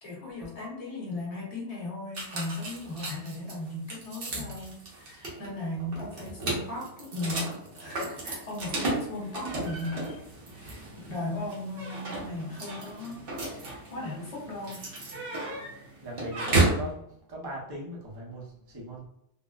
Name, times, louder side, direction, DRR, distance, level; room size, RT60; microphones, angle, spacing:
voice 1, 0.0-10.2 10.5-14.9, left 2 dB, 35° left, -4 dB, 0.9 m, -37 dB
sound 1, 2.1-16.9, right 2 dB, 55° right, 0.9 m, -33 dB
voice 2, 16.0-17.0 17.3-19.1, right 1 dB, 25° right, -3 dB, 0.6 m, -39 dB
3.6 x 2.0 x 2.3 m, 0.76 s
omnidirectional pair, 1.2 m